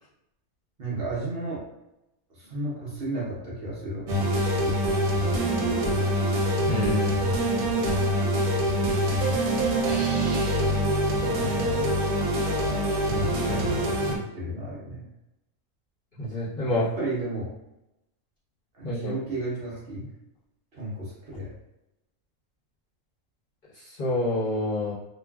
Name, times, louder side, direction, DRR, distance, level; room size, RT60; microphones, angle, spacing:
voice 1, 0.8-1.6 2.3-5.0 9.9-10.1 11.3-11.5 13.0-15.1 16.6-17.5 18.7-20.1 20.7-21.5, right 1 dB, 50° right, -6 dB, 0.8 m, -33 dB
sound 1, 4.1-14.2, right 1 dB, 75° right, 1.0 m, -25 dB
voice 2, 6.7-7.2 16.2-16.9 18.8-19.2 23.8-24.9, left 2 dB, 35° left, -10 dB, 0.9 m, -28 dB
3.1 x 2.4 x 2.2 m, 0.91 s
omnidirectional pair, 1.5 m